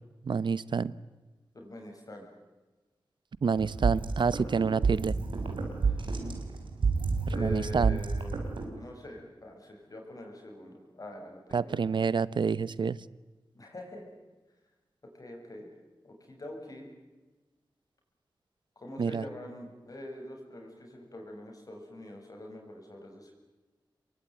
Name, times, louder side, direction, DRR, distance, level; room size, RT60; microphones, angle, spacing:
voice 1, 0.2-0.9 3.4-5.2 7.4-8.0 11.5-13.0 19.0-19.2, right 5 dB, 70° right, 19 dB, 0.8 m, -28 dB
voice 2, 1.5-2.3 5.8-6.0 7.3-8.5 8.8-11.8 13.5-14.0 15.1-15.7 16.0-16.9 18.8-23.3, left 1 dB, 45° left, 2 dB, 7.7 m, -44 dB
sound 1, 3.6-8.7, right 4 dB, 90° right, 4.6 m, -30 dB
27.0 x 22.5 x 9.5 m, 1.2 s
wide cardioid pair, 75°, 8 cm